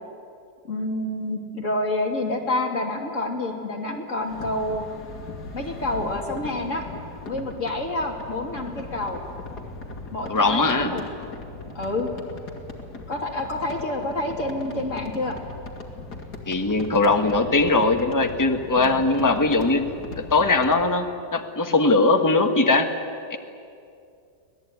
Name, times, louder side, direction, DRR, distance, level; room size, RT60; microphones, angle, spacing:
voice 1, 0.7-4.8 5.5-6.8 7.3-9.2 10.1-11.0 11.7-12.1 13.1-15.4 18.8-19.0, left 2 dB, 45° left, 0 dB, 3.2 m, -28 dB
sound 1, 4.2-20.9, left 3 dB, 70° left, 2.9 m, -39 dB
voice 2, 10.3-10.9 16.5-19.9 20.3-21.1 21.3-22.9 23.3-23.4, left 3 dB, 10° left, 5 dB, 1.2 m, -20 dB
25.5 x 18.5 x 9.5 m, 2.4 s
omnidirectional pair, 1.8 m